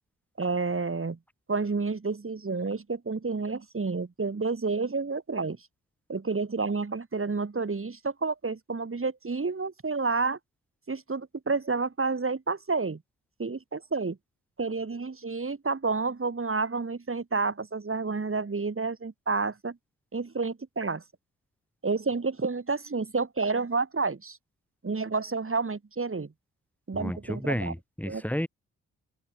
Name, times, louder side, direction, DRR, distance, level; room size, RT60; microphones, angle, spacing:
voice 1, 0.4-1.2 1.5-5.6 6.1-10.4 10.9-13.0 13.4-14.2 14.6-19.7 20.1-21.0 21.8-24.4 24.8-26.3 26.9-27.7 28.0-28.2, right 4 dB, 35° right, 6.2 m, -30 dB
voice 2, 26.9-28.5, equal, 5° left, 5.8 m, -31 dB
open air
supercardioid pair, 50°, 36 cm